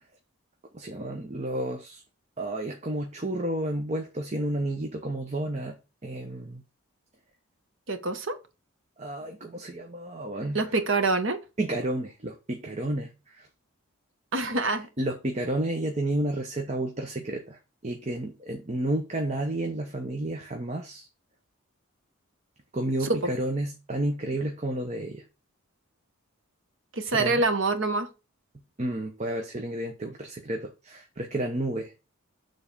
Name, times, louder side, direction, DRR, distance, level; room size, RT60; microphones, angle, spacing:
voice 1, 0.7-2.0 2.4-5.7 6.0-6.6 9.0-10.7 11.6-13.5 14.5-21.1 22.7-25.2 27.1-27.4 28.8-31.9, right 1 dB, 30° right, 0.9 m, -31 dB
voice 2, 7.9-8.4 10.5-11.4 14.3-14.9 23.1-23.2 27.0-28.1, right 3 dB, 60° right, 1.1 m, -25 dB
7.1 x 3.9 x 5.6 m
head